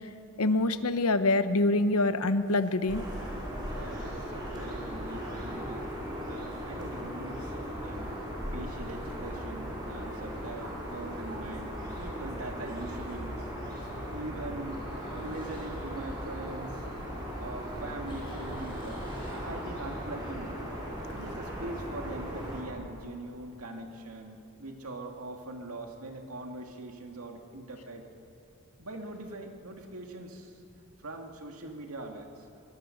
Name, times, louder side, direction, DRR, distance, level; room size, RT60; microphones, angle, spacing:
voice 1, 0.4-3.0, left 2 dB, 85° left, 11 dB, 1.0 m, -25 dB
sound 1, 2.9-22.6, equal, 20° right, 5.2 m, -38 dB
voice 2, 3.7-5.9 6.2-7.5 7.8-8.1 8.5-13.5 14.1-16.8 17.4-20.5 21.1-28.0 28.8-30.6 31.0-32.3, right 2 dB, 85° right, 3 dB, 2.1 m, -42 dB
sound 2, 5.0-13.4, right 1 dB, 70° right, 3.7 m, -53 dB
sound 3, 14.8-17.3 17.6-20.0, left 1 dB, 25° left, 5.3 m, -53 dB
23.0 x 22.0 x 6.5 m, 2.9 s
head